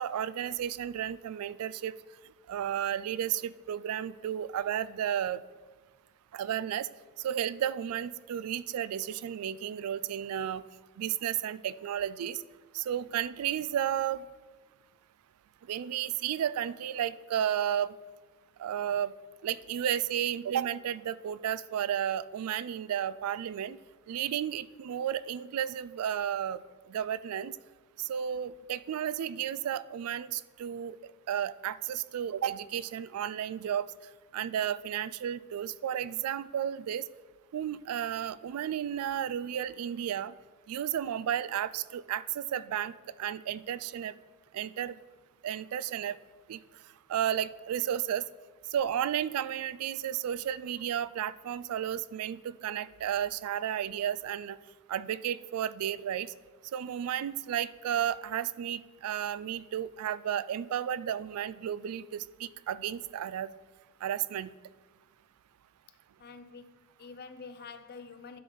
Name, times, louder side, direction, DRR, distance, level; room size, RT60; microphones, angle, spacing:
voice 1, 0.0-1.9 2.5-5.4 6.3-6.9 7.2-10.6 11.0-12.4 12.7-14.2 15.7-17.9 18.6-19.1 19.4-23.8 24.1-26.6 26.9-27.6 28.0-31.0 31.3-33.9 34.3-37.0 37.5-40.3 40.7-42.9 43.2-44.1 44.5-44.9 45.4-46.2 46.5-46.6 47.1-48.2 48.7-54.6 54.9-56.3 56.7-63.5 64.0-64.5, right 10 dB, 90° right, 16 dB, 0.3 m, -33 dB
voice 2, 66.2-68.4, left 5 dB, 45° left, 11 dB, 0.5 m, -47 dB
10.5 x 6.7 x 3.9 m, 1.3 s
head